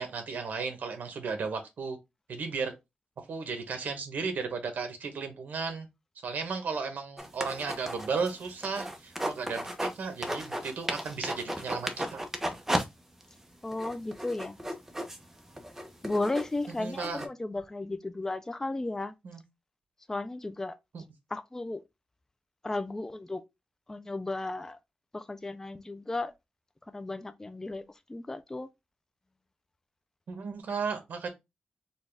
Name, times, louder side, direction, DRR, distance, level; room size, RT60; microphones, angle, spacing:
voice 1, 0.0-2.0 2.3-2.7 3.3-5.9 6.2-12.2 16.8-17.2 19.2-19.4 20.9-21.0 30.3-31.3, right 5 dB, 70° right, 1.0 m, -34 dB
sound 1, 7.2-10.0 10.2-12.9 13.2-13.3 13.7-17.3, right 1 dB, 10° right, 0.7 m, -34 dB
voice 2, 13.6-14.6 16.0-19.1 20.1-20.7 21.3-21.8 22.6-23.4 23.9-24.8 25.1-26.3 26.9-28.7, left 2 dB, 15° left, 0.3 m, -34 dB
4.1 x 2.3 x 3.3 m
wide cardioid pair, 105°, 3 cm